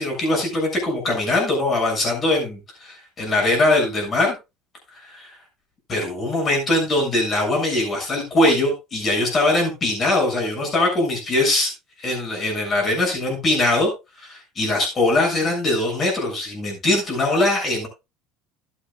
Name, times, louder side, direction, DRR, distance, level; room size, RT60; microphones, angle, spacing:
voice 1, 0.0-4.4 5.1-5.3 5.9-11.7 12.0-13.9 14.2-17.9, left 2 dB, 30° left, 1 dB, 6.9 m, -21 dB
13.0 x 11.0 x 2.4 m, 0.25 s
cardioid pair, 125°, 0 cm